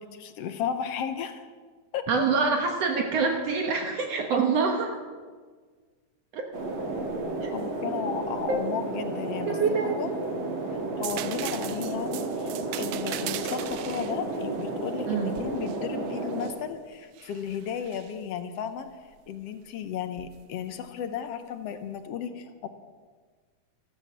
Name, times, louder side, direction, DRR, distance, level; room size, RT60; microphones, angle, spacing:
voice 1, 0.1-1.5 1.9-2.3 7.5-9.6 9.8-10.1 11.0-18.9 19.3-22.7, left 8 dB, 70° left, 9 dB, 1.6 m, -34 dB
voice 2, 2.1-5.0 6.3-6.5 7.4-7.5 8.5-8.6 9.5-10.0 15.1-15.3, right 5 dB, 65° right, 3 dB, 2.0 m, -25 dB
sound 1, 6.5-16.5, right 2 dB, 45° right, 2.8 m, -32 dB
sound 2, 11.0-16.6 17.2-18.1 20.2-20.4, right 14 dB, 85° right, 2.0 m, -39 dB
13.5 x 13.0 x 7.2 m, 1.5 s
omnidirectional pair, 3.4 m